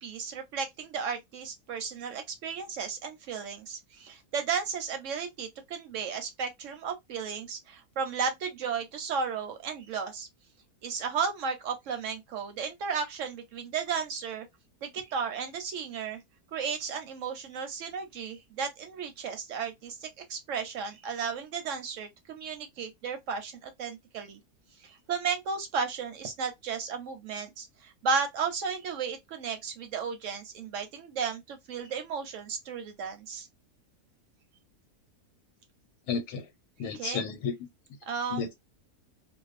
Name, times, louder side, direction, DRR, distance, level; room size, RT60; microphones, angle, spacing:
voice 1, 0.0-10.3 10.8-14.5 14.8-16.2 16.5-24.4 24.8-33.5 36.8-37.2 38.1-38.5, right 6 dB, 65° right, 0.8 m, -34 dB
voice 2, 36.1-36.4 36.8-37.5 38.3-38.5, left 5 dB, 90° left, 1.1 m, -32 dB
2.5 x 2.1 x 2.4 m
omnidirectional pair, 1.6 m